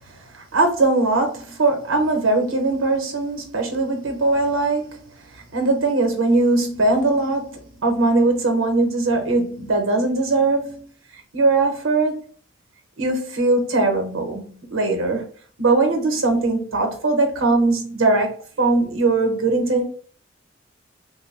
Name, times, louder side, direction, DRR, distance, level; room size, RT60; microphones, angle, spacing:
voice 1, 0.3-10.9 11.3-12.2 13.0-15.3 15.6-18.3 18.6-19.8, right 2 dB, 85° right, 0.9 m, -20 dB
3.4 x 2.1 x 3.2 m
head